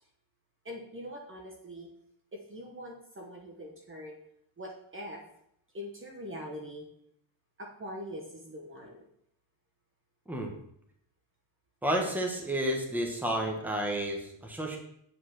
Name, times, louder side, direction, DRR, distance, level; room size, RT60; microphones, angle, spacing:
voice 1, 0.6-1.9 2.3-4.2 4.6-5.2 5.7-6.8 7.6-9.1, equal, 25° right, 0 dB, 1.1 m, -43 dB
voice 2, 11.8-14.8, right 1 dB, 5° right, 1 dB, 1.3 m, -31 dB
8.3 x 5.1 x 6.4 m, 0.72 s
wide cardioid pair, 175°, 47 cm